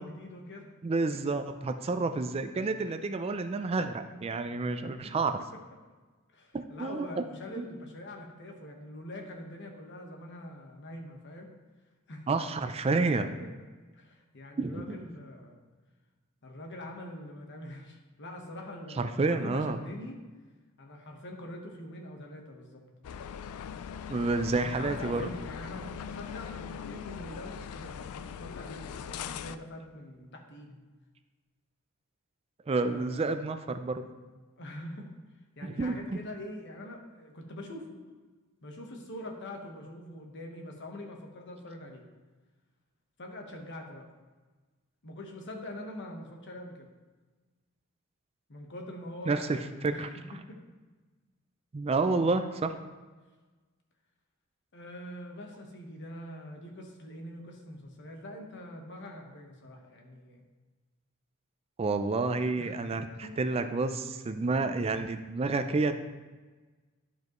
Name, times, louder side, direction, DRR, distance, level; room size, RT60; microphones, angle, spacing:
voice 1, 0.0-0.7 1.1-1.3 2.8-2.9 4.8-4.9 6.3-11.5 12.1-12.3 13.4-13.5 13.9-15.6 16.4-20.2 20.8-22.8 24.5-30.8 32.9-33.2 34.6-35.1 35.6-38.0 38.6-42.0 43.2-44.1 45.0-46.9 48.5-50.2 50.5-50.6 54.7-60.5 62.6-62.9 63.2-63.3, left 1 dB, 55° left, 2 dB, 1.2 m, -44 dB
voice 2, 0.8-5.4 6.5-7.1 7.5-7.7 12.3-13.3 14.6-15.0 19.0-19.8 24.1-25.3 32.7-34.0 35.6-36.2 49.3-50.1 51.7-52.7 61.8-65.9, right 3 dB, 30° right, 9 dB, 0.3 m, -29 dB
sound 1, 23.0-29.6, left 7 dB, 85° left, 0.3 m, -41 dB
11.5 x 5.1 x 3.0 m, 1.3 s
head